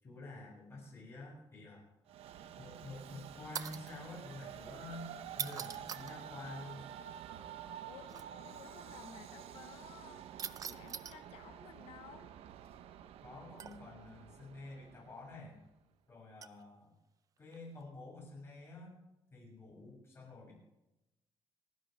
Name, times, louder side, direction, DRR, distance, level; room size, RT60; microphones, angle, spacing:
voice 1, 0.0-1.9 2.6-5.1 5.4-6.8 13.2-15.6 16.1-16.9 17.4-19.0 19.3-20.6, left 2 dB, 25° left, -3 dB, 6.9 m, -49 dB
Train, 2.1-15.5, right 9 dB, 90° right, 0.8 m, -50 dB
sound 1, 3.5-4.0 5.3-6.2 8.1-8.2 10.4-11.2 13.6-14.0 16.4-16.6 17.5-17.8, right 7 dB, 35° right, 0.5 m, -42 dB
voice 2, 7.9-10.2 10.7-12.3, left 9 dB, 90° left, 7 dB, 1.0 m, -55 dB
29.5 x 10.5 x 3.3 m, 0.94 s
cardioid pair, 175°, 10 cm